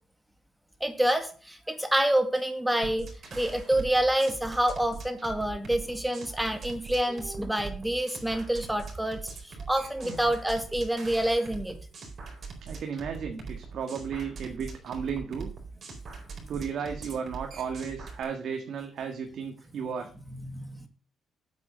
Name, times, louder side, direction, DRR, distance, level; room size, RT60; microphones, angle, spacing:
voice 1, 0.8-11.8 20.3-20.9, right 1 dB, 5° right, 7 dB, 2.1 m, -28 dB
sound 1, 2.8-18.2, right 4 dB, 50° right, 4.2 m, -41 dB
voice 2, 12.6-15.5 16.5-20.1, right 6 dB, 65° right, 4 dB, 1.7 m, -34 dB
8.4 x 8.0 x 6.2 m, 0.38 s
cardioid pair, 90°, 0 cm